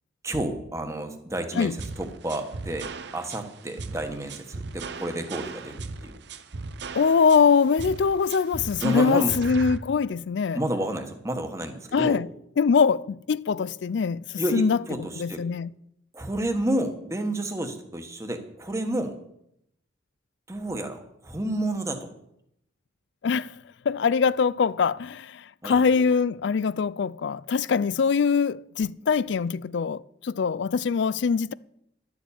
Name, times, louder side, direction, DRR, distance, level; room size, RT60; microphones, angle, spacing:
voice 1, 0.2-6.1 8.8-9.3 10.5-12.2 14.4-15.4 16.1-19.1 20.5-22.1 25.6-25.8, right 1 dB, 15° right, 1.3 m, -30 dB
sound 1, 1.8-9.8, right 3 dB, 60° right, 0.8 m, -37 dB
voice 2, 6.9-10.6 11.9-12.3 12.6-15.7 23.2-23.5 23.9-31.5, left 5 dB, 60° left, 0.4 m, -23 dB
12.0 x 7.2 x 8.5 m
head